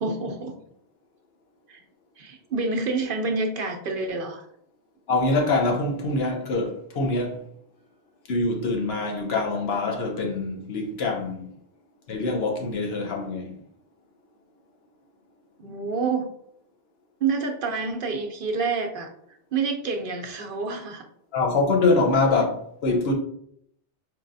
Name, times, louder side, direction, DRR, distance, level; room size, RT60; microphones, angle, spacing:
voice 1, 0.0-0.6 1.7-1.8 2.2-4.5 15.6-16.3 17.2-19.1 19.5-21.0, right 4 dB, 60° right, 0.7 m, -28 dB
voice 2, 5.1-7.4 8.3-11.5 12.1-13.6 21.3-23.1, left 3 dB, 70° left, 1.0 m, -24 dB
4.6 x 3.1 x 2.6 m
omnidirectional pair, 1.1 m